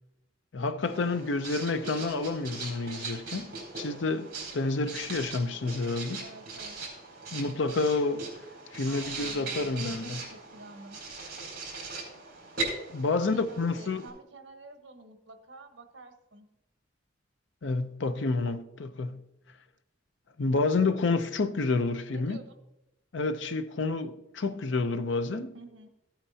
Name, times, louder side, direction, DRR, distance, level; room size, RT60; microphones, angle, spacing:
voice 1, 0.5-6.2 7.3-8.3 8.7-10.2 12.9-14.1 17.6-19.2 20.4-22.4 23.1-25.5, left 3 dB, 75° left, 0.6 m, -29 dB
Writing, 0.8-14.1, right 3 dB, 50° right, 4.3 m, -40 dB
voice 2, 6.2-6.8 8.9-11.0 13.2-16.5 22.1-22.6 25.5-25.9, right 2 dB, 75° right, 1.1 m, -49 dB
15.0 x 8.8 x 2.8 m
head